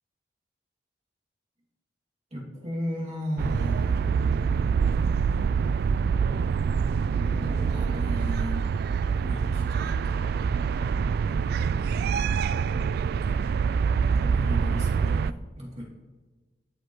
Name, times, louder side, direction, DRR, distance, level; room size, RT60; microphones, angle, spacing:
voice 1, 2.3-4.3 7.2-10.7 13.3-13.7 14.0-15.8, equal, 40° right, -4 dB, 2.5 m, -36 dB
sound 1, 3.4-15.3, right 6 dB, 60° right, 0.3 m, -25 dB
20.5 x 8.1 x 3.1 m, 1.3 s
head